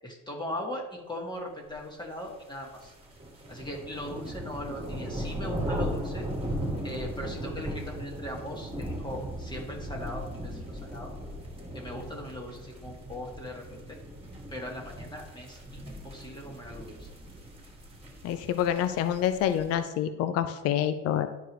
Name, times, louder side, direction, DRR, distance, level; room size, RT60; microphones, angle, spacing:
voice 1, 0.0-2.9 3.5-6.3 6.8-11.1 11.7-14.0 14.5-17.1, left 1 dB, 10° left, -1 dB, 1.8 m, -39 dB
sound 1, 2.3-19.8, right 1 dB, 15° right, 2.0 m, -38 dB
voice 2, 18.2-21.3, left 10 dB, 40° left, 10 dB, 0.6 m, -27 dB
11.0 x 4.6 x 3.1 m, 1.0 s
supercardioid pair, 100°, 37 cm